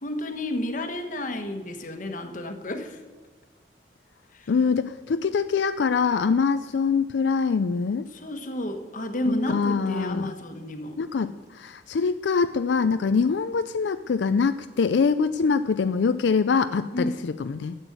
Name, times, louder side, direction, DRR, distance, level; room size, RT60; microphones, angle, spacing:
voice 1, 0.0-3.0 4.3-4.5 8.1-11.0 16.9-17.1, left 1 dB, 45° left, 7 dB, 1.3 m, -31 dB
voice 2, 4.5-8.1 9.3-10.3 11.0-17.8, left 5 dB, 80° left, 11 dB, 0.4 m, -24 dB
13.0 x 8.0 x 7.9 m, 1.3 s
head